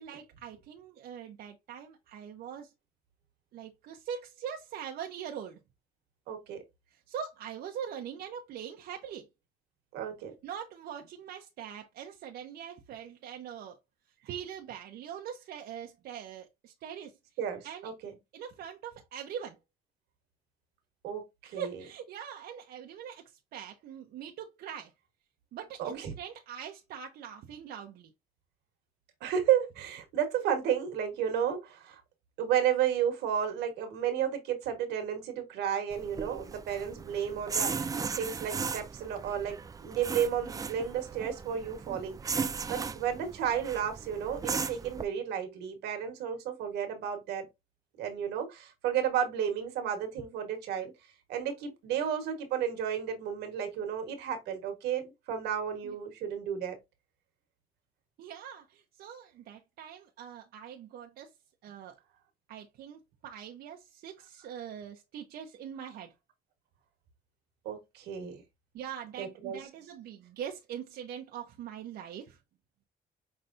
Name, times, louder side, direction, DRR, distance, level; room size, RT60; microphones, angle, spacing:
voice 1, 0.0-2.7 3.5-5.6 6.9-9.3 10.4-13.8 14.2-17.2 17.6-17.9 18.3-19.6 21.4-23.2 23.5-24.9 25.5-28.1 55.8-56.0 58.2-61.3 61.6-62.0 62.5-66.1 68.7-72.4, right 8 dB, 70° right, 0.7 m, -42 dB
voice 2, 6.3-6.6 9.9-10.3 17.4-18.1 21.0-21.2 21.5-21.7 25.8-26.1 29.2-32.0 32.4-39.5 39.8-47.5 48.0-50.9 51.3-56.7 67.6-68.4 69.2-69.6, right 9 dB, 90° right, 1.4 m, -32 dB
sound 1, 35.9-45.0, right 5 dB, 20° right, 0.4 m, -37 dB
5.6 x 3.2 x 2.6 m
cardioid pair, 105°, 17 cm